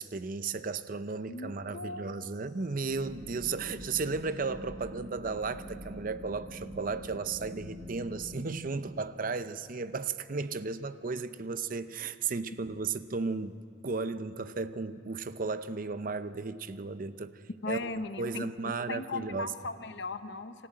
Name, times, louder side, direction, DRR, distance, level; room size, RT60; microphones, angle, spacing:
voice 1, 0.0-17.4 17.7-19.5, right 4 dB, 45° right, 0.6 m, -35 dB
voice 2, 1.3-2.1 17.6-18.5 18.9-20.7, left 3 dB, 65° left, 0.9 m, -37 dB
sound 1, 2.9-8.5, equal, 25° right, 1.5 m, -45 dB
25.5 x 14.0 x 8.8 m
head